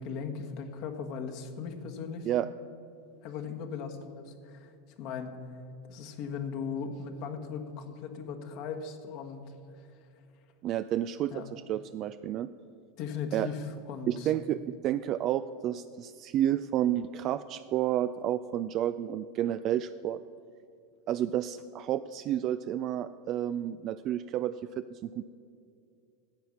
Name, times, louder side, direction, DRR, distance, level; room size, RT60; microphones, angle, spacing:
voice 1, 0.0-2.3 3.2-4.7 5.0-5.6 5.9-9.4 9.8-9.9 11.3-11.5 13.0-14.3, left 6 dB, 55° left, 4 dB, 1.3 m, -38 dB
voice 2, 10.6-12.5 13.3-13.5 14.1-20.2 21.1-25.2, right 11 dB, 45° right, 12 dB, 0.3 m, -30 dB
10.5 x 7.7 x 7.1 m, 2.6 s
hypercardioid pair, 100°, 0 cm